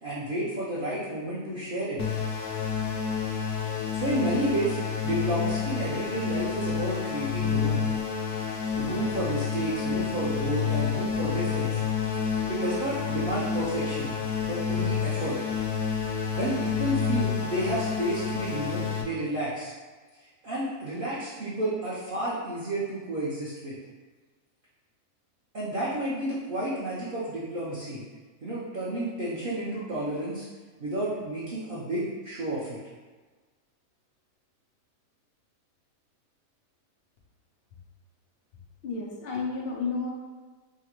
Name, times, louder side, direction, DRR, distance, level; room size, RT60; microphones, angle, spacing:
voice 1, 0.0-2.0 3.7-4.8 5.0-7.9 8.7-11.8 12.5-14.1 14.5-15.4 16.4-19.7 20.4-23.7 25.5-28.0 28.4-30.5 30.8-32.8, right 1 dB, 50° right, -8 dB, 0.6 m, -31 dB
sound 1, 2.0-19.0, left 6 dB, 70° left, 0.9 m, -29 dB
voice 2, 38.8-40.1, left 4 dB, 90° left, -2 dB, 0.5 m, -31 dB
4.7 x 2.1 x 2.9 m, 1.4 s
omnidirectional pair, 1.6 m